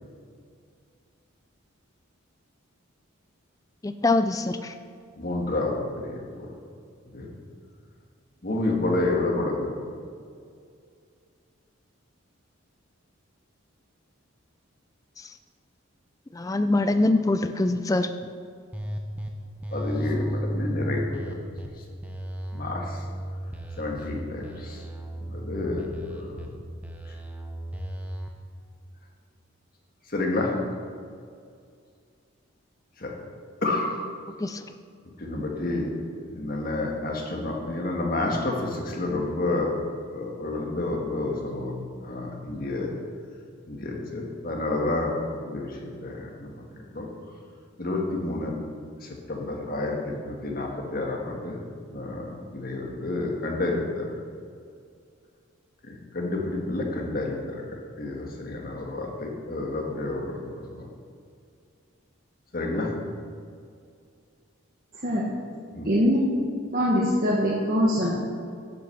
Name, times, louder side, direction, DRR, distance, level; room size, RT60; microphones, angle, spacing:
voice 1, 3.8-4.7 16.4-18.1 34.4-34.6, left 2 dB, 15° left, 9 dB, 0.3 m, -23 dB
voice 2, 5.2-6.5 7.1-7.3 8.4-9.7 19.7-21.4 22.5-23.0 23.8-24.8 25.2-26.5 30.1-30.5 33.0-33.1 33.6-33.9 35.2-39.8 40.1-41.7 42.0-42.9 43.7-45.2 45.5-46.6 46.9-47.1 47.8-48.5 49.0-51.6 51.9-54.1 55.8-60.8 62.5-62.9 65.7-65.9, left 2 dB, 45° left, 0 dB, 1.6 m, -30 dB
sound 1, 18.7-19.3 19.6-21.7 22.0-24.1 24.4-26.5 26.8-28.3, equal, 5° right, 0.8 m, -33 dB
voice 3, 65.8-66.2 66.7-68.1, equal, 40° right, -5 dB, 1.3 m, -22 dB
10.5 x 8.3 x 5.9 m, 2.3 s
head